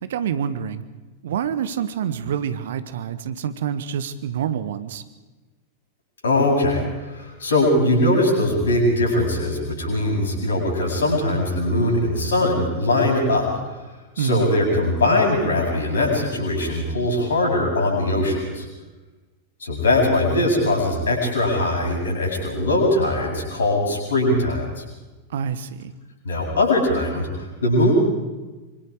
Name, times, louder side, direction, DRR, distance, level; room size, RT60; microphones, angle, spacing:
voice 1, 0.0-0.8 1.2-5.0 14.2-14.5 25.3-25.9, right 8 dB, 60° right, 12 dB, 1.4 m, -27 dB
voice 2, 6.2-13.5 14.2-18.7 19.6-24.8 26.2-27.9, left 1 dB, 70° left, 0 dB, 8.0 m, -21 dB
25.5 x 25.5 x 5.0 m, 1.2 s
figure-of-eight pair, 90°, 0 cm